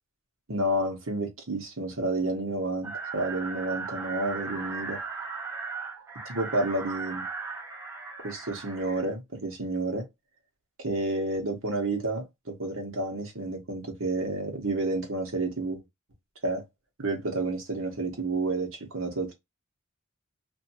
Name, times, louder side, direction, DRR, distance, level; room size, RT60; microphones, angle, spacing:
voice 1, 0.5-5.0 6.2-7.2 8.2-10.0 10.8-15.8 16.4-16.6 17.0-19.3, right 2 dB, 65° right, 1.1 m, -30 dB
sound 1, 2.8-9.0, right 4 dB, 10° right, 1.0 m, -37 dB
2.6 x 2.6 x 2.7 m
head